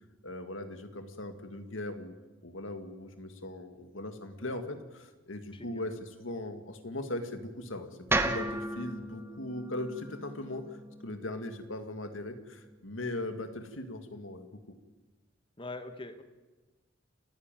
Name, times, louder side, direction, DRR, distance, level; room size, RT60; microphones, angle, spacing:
voice 1, 0.2-2.1 2.4-10.6 11.0-14.6, left 1 dB, 85° left, 8 dB, 2.1 m, -39 dB
voice 2, 5.5-5.8 15.6-16.2, left 2 dB, 25° left, 8 dB, 1.6 m, -42 dB
sound 1, 8.1-12.3, right 1 dB, 10° right, 1.1 m, -35 dB
29.5 x 10.5 x 9.1 m, 1.2 s
head